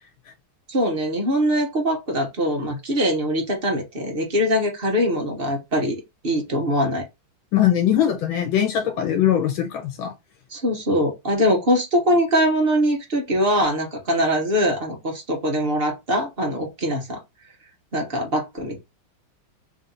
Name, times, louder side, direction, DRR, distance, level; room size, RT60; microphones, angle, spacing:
voice 1, 0.7-6.0 6.2-7.0 10.5-17.2 17.9-18.8, equal, 35° right, 1.1 m, -22 dB
voice 2, 7.5-10.1, left 10 dB, 80° left, 1.6 m, -21 dB
3.6 x 2.7 x 3.8 m
omnidirectional pair, 2.2 m